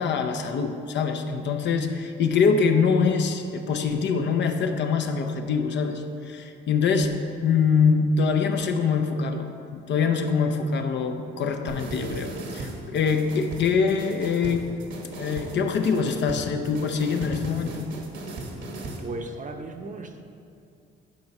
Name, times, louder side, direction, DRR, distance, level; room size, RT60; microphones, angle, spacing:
voice 1, 0.0-17.8, left 5 dB, 65° left, 6 dB, 0.7 m, -24 dB
sound 1, 11.7-19.1, right 2 dB, 70° right, 1.2 m, -37 dB
voice 2, 19.0-20.2, right 2 dB, 40° right, 5 dB, 0.7 m, -36 dB
11.0 x 4.8 x 4.1 m, 2.5 s
cardioid pair, 90°, 20 cm